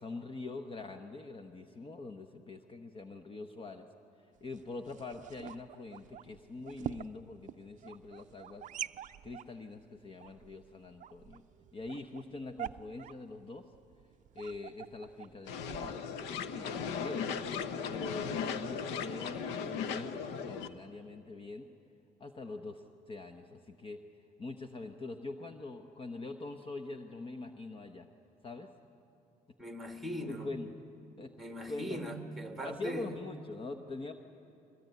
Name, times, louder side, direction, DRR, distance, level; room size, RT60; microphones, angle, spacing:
voice 1, 0.0-3.9 4.2-8.7 9.2-11.4 11.7-13.6 14.3-16.1 16.5-17.3 17.9-21.7 22.2-24.0 24.4-28.1 28.4-28.7 30.3-30.7 31.2-32.0 32.6-34.1, left 3 dB, 30° left, 6 dB, 1.0 m, -44 dB
sound 1, 4.3-16.7, right 11 dB, 50° right, 0.5 m, -47 dB
sound 2, 15.5-20.7, left 6 dB, 85° left, 1.0 m, -37 dB
voice 2, 29.6-30.5 31.4-33.2, equal, ahead, 4 dB, 2.1 m, -40 dB
22.5 x 19.5 x 9.4 m, 2.8 s
cardioid pair, 110°, 17 cm